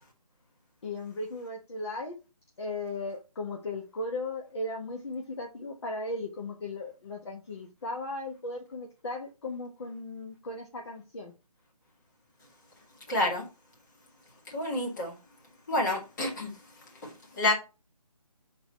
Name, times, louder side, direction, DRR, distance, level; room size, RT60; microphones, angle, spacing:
voice 1, 0.8-2.2 2.6-11.3, left 2 dB, 45° left, 1.1 m, -37 dB
voice 2, 13.1-13.4 14.5-15.1 15.7-16.5 17.0-17.5, left 1 dB, 30° left, 1.9 m, -28 dB
5.7 x 4.0 x 4.2 m
figure-of-eight pair, 155°, 19 cm